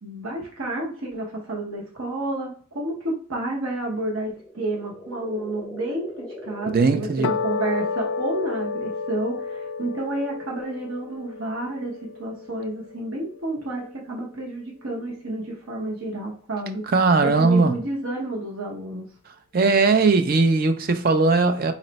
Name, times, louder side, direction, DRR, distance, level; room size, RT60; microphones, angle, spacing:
voice 1, 0.0-11.9 12.2-16.8 17.2-19.0, right 1 dB, 80° right, 1.0 m, -30 dB
sound 1, 4.3-8.3, left 1 dB, 10° left, 0.7 m, -41 dB
voice 2, 6.7-7.3 16.9-17.7 19.5-21.7, right 3 dB, 45° right, 0.4 m, -19 dB
sound 2, 7.2-13.7, left 5 dB, 65° left, 0.3 m, -31 dB
4.0 x 2.1 x 4.0 m
head